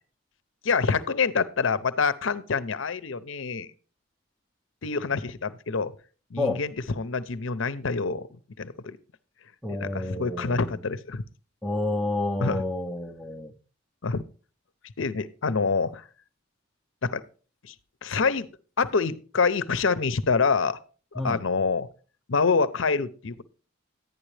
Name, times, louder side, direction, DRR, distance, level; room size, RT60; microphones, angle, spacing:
voice 1, 0.6-3.7 4.8-5.9 6.3-8.3 8.6-9.0 9.7-11.2 12.4-12.6 14.0-14.2 15.0-16.0 17.0-17.2 17.7-17.8 18.0-18.5 18.8-20.8 21.1-21.9 22.3-23.4, left 4 dB, 65° left, 0.7 m, -26 dB
voice 2, 9.6-10.8 11.6-13.5 21.2-21.4, left 2 dB, ahead, 0.6 m, -29 dB
11.0 x 9.9 x 3.3 m
head